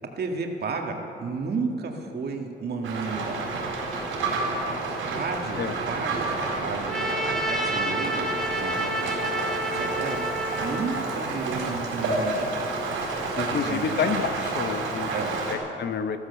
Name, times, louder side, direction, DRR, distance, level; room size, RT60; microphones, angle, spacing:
voice 1, 0.2-3.5 5.0-7.1 7.5-9.1 9.7-10.2 10.6-12.5 13.3-14.0 15.1-15.3, right 4 dB, 55° right, 2 dB, 2.0 m, -32 dB
Rain, 2.8-15.5, right 3 dB, 85° right, 4.4 m, -30 dB
Trumpet, 6.9-11.3, right 1 dB, ahead, 2.1 m, -30 dB
voice 2, 13.4-15.1 15.5-16.2, left 6 dB, 60° left, 9 dB, 1.0 m, -29 dB
14.5 x 14.0 x 6.9 m, 2.8 s
cardioid pair, 90°, 20 cm